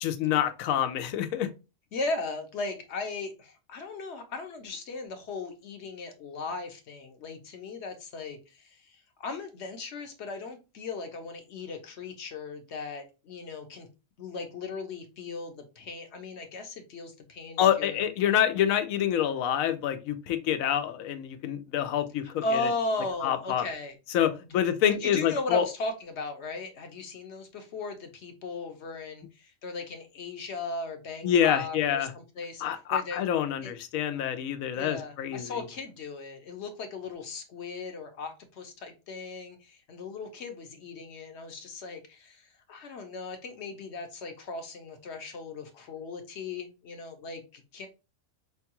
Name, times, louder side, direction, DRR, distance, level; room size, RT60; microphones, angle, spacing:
voice 1, 0.0-1.5 17.6-22.7 23.2-23.7 24.1-25.7 31.2-32.1 32.6-35.7, left 10 dB, 90° left, 9 dB, 1.0 m, -27 dB
voice 2, 1.9-13.9 14.2-18.0 22.2-23.9 24.5-24.6 24.9-32.6 32.9-33.2 33.6-33.7 34.7-47.9, left 3 dB, 60° left, 6 dB, 0.9 m, -37 dB
5.1 x 2.3 x 2.8 m, 0.29 s
omnidirectional pair, 1.4 m